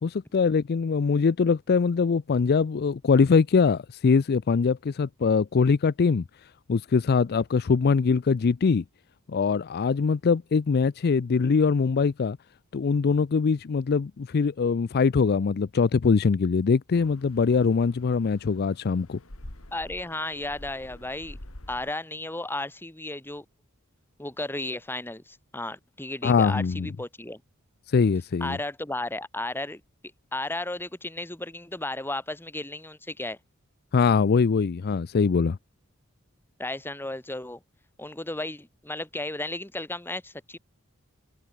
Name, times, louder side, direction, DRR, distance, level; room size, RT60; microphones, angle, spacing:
voice 1, 0.0-6.2 6.7-8.8 9.3-12.4 12.7-19.2 26.2-26.9 27.9-28.6 33.9-35.6, left 5 dB, 50° left, 0.4 m, -22 dB
sound 1, 16.9-21.9, left 1 dB, 85° left, 3.4 m, -47 dB
voice 2, 19.7-21.4 21.7-23.4 24.2-27.4 28.4-29.8 30.3-33.4 36.6-37.6 38.0-40.6, left 2 dB, 10° left, 1.6 m, -34 dB
head